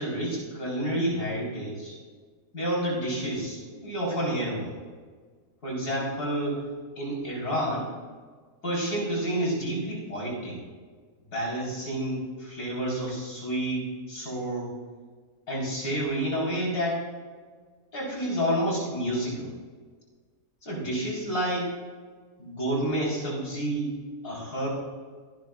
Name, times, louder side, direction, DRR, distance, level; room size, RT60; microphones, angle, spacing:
voice 1, 0.0-2.0 2.5-4.7 5.6-6.6 7.0-7.9 8.6-10.6 11.3-14.7 15.5-17.1 17.9-19.5 20.6-21.7 22.4-23.9 24.2-24.7, right 1 dB, 85° left, -4 dB, 4.9 m, -29 dB
24.0 x 10.0 x 2.5 m, 1.6 s
omnidirectional pair, 1.6 m